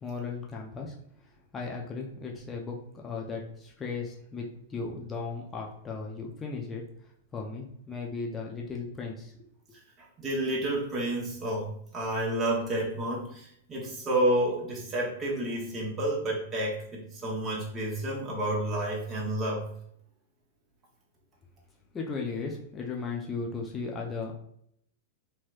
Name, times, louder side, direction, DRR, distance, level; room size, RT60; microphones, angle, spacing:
voice 1, 0.0-0.9 1.5-6.8 7.3-9.3 21.9-24.3, left 4 dB, 20° left, -1 dB, 0.6 m, -36 dB
voice 2, 10.2-19.7, right 1 dB, 20° right, -4 dB, 0.9 m, -30 dB
3.0 x 3.0 x 2.4 m, 0.70 s
hypercardioid pair, 110°, 0 cm